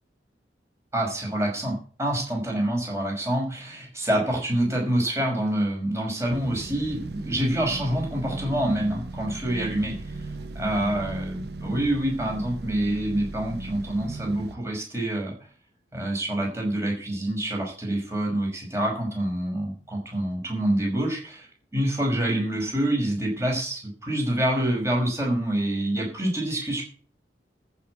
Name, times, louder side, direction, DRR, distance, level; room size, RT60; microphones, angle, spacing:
voice 1, 0.9-10.3 10.5-15.3 15.9-21.5 21.7-26.8, right 1 dB, 15° right, -1 dB, 5.7 m, -26 dB
sound 1, 6.3-14.6, right 2 dB, 65° right, 1.1 m, -37 dB
14.0 x 6.4 x 8.7 m, 0.41 s
head